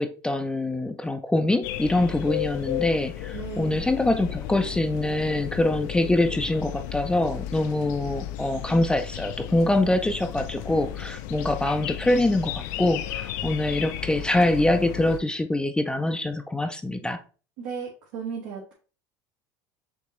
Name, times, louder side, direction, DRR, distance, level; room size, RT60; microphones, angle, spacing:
voice 1, 0.0-17.2, left 1 dB, 10° left, 8 dB, 0.4 m, -24 dB
sound 1, 1.6-15.2, left 12 dB, 75° left, 0.4 m, -34 dB
voice 2, 3.3-3.9 17.6-18.7, right 6 dB, 80° right, -4 dB, 1.4 m, -35 dB
5.2 x 2.9 x 3.0 m, 0.37 s
supercardioid pair, 105°, 10 cm